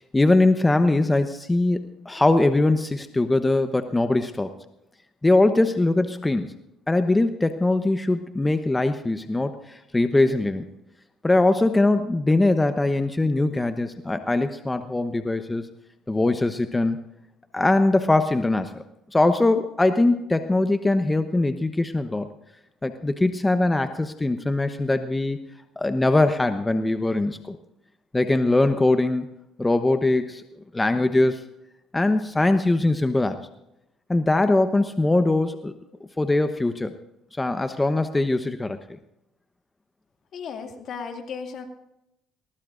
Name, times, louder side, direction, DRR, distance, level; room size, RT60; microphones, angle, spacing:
voice 1, 0.0-4.5 5.2-6.5 6.9-10.6 11.2-15.7 16.1-17.0 17.5-18.8 19.1-22.3 22.8-25.4 25.8-27.6 28.1-29.3 29.6-30.4 30.7-31.4 31.9-33.4 34.1-35.7 36.2-36.9 37.3-39.0, left 2 dB, 15° left, 8 dB, 1.0 m, -21 dB
voice 2, 40.3-41.6, left 6 dB, 60° left, 4 dB, 2.3 m, -35 dB
21.0 x 19.5 x 2.6 m, 0.86 s
supercardioid pair, 65°, 0 cm